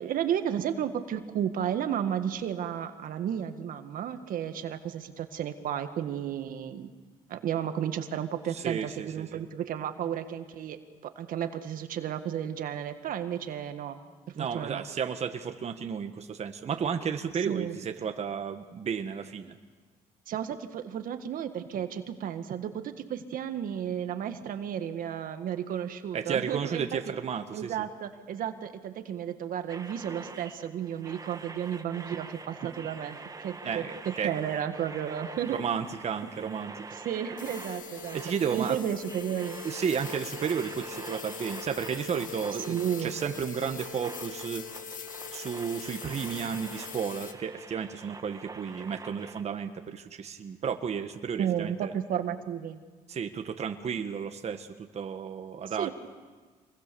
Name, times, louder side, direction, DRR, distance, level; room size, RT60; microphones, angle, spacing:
voice 1, 0.0-6.9 7.3-10.8 11.0-14.0 14.4-14.8 17.5-17.8 20.3-26.9 27.5-35.6 36.9-38.2 38.5-39.6 42.7-43.1 51.4-52.8 55.8-55.9, right 9 dB, 70° right, 8 dB, 1.6 m, -33 dB
voice 2, 8.5-9.4 14.3-19.6 26.1-27.9 33.6-34.3 35.5-36.7 38.1-38.8 39.6-44.6 45.3-51.9 53.1-55.9, right 7 dB, 45° right, 6 dB, 1.5 m, -33 dB
sound 1, 29.7-49.4, right 3 dB, 25° right, 1.6 m, -46 dB
sound 2, 37.4-47.3, left 5 dB, 60° left, 2.1 m, -42 dB
26.5 x 21.5 x 6.9 m, 1.4 s
cardioid pair, 95°, 15 cm